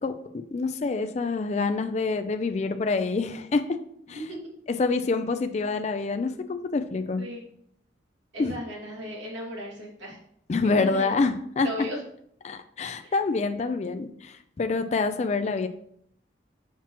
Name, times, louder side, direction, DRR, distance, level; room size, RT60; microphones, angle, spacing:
voice 1, 0.0-3.8 4.1-4.2 4.7-7.2 8.4-8.5 10.5-11.7 12.4-15.7, left 3 dB, 35° left, 8 dB, 0.3 m, -27 dB
voice 2, 8.3-10.2 10.7-11.2 11.6-12.0 13.0-13.1, equal, 75° right, -4 dB, 2.3 m, -36 dB
6.0 x 5.8 x 3.0 m, 0.69 s
head